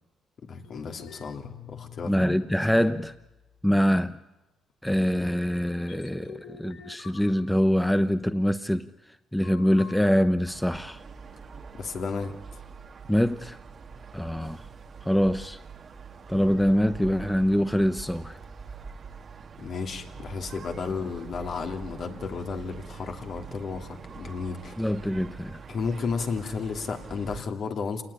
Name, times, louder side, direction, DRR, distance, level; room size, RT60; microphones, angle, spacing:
voice 1, 0.4-2.1 11.8-12.6 16.3-16.4 19.6-24.8 25.7-28.0, left 5 dB, 60° left, 3.0 m, -33 dB
sound 1, 0.6-2.4 2.7-3.7 4.1-4.2 4.8-5.0 5.8-8.3 9.4-9.9, left 8 dB, 85° left, 1.7 m, -48 dB
voice 2, 2.0-3.1 3.6-4.2 4.8-8.9 9.3-11.0 13.1-13.6 14.1-14.6 15.0-15.6 16.3-18.4 24.8-25.6, equal, 5° left, 0.9 m, -24 dB
sound 2, 10.4-27.4, right 5 dB, 50° right, 1.6 m, -44 dB
27.5 x 19.0 x 9.9 m
cardioid pair, 90°, 0 cm